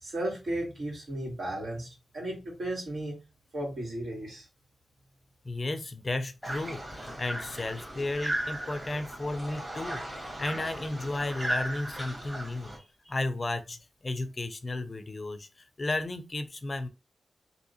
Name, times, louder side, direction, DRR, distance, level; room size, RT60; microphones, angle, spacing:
voice 1, 0.0-1.9 2.1-3.2 3.5-4.5, right 1 dB, 65° right, 2.1 m, -34 dB
voice 2, 5.4-12.8 13.1-16.9, left 2 dB, 35° left, 0.4 m, -34 dB
sound 1, 6.4-12.8, right 1 dB, 20° right, 1.8 m, -36 dB
3.5 x 2.7 x 2.7 m
cardioid pair, 80°, 0 cm